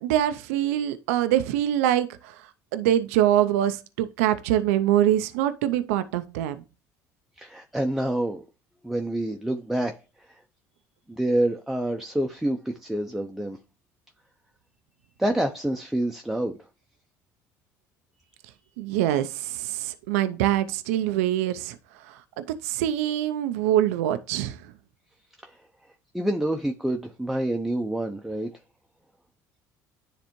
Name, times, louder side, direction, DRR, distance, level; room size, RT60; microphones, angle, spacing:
voice 1, 0.0-6.6 18.8-24.7, right 12 dB, 90° right, 0.4 m, -24 dB
voice 2, 7.4-8.4 8.8-9.9 10.2-10.4 11.1-13.6 15.2-16.6 25.4-25.6 26.1-28.5, right 1 dB, 5° right, 0.6 m, -27 dB
9.9 x 3.3 x 3.0 m
supercardioid pair, 80°, 8 cm